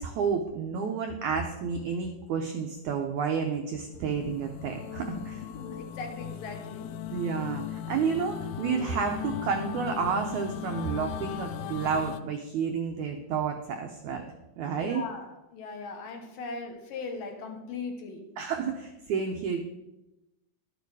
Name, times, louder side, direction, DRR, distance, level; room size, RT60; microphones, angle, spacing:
voice 1, 0.0-5.4 7.1-14.2 14.6-15.0 18.4-19.6, right 6 dB, 85° right, 4 dB, 1.7 m, -30 dB
sound 1, 3.9-12.2, left 10 dB, 90° left, 1.9 m, -38 dB
voice 2, 5.5-6.9 14.8-18.3, left 4 dB, 70° left, 4 dB, 2.5 m, -39 dB
12.5 x 9.2 x 4.8 m, 0.96 s
omnidirectional pair, 4.6 m